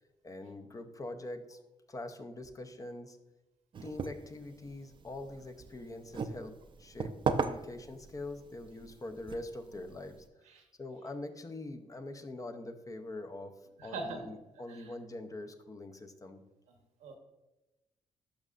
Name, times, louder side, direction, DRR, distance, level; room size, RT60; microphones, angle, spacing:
voice 1, 0.2-1.6 1.9-3.2 3.8-10.2 10.8-16.4, left 2 dB, 30° left, 8 dB, 0.8 m, -44 dB
sound 1, 3.7-10.3, right 5 dB, 45° right, 0.5 m, -39 dB
voice 2, 13.8-14.2 14.7-14.9 17.0-17.2, right 3 dB, 90° right, 4 dB, 1.2 m, -41 dB
11.5 x 5.5 x 2.5 m, 0.99 s
cardioid pair, 75°, 12 cm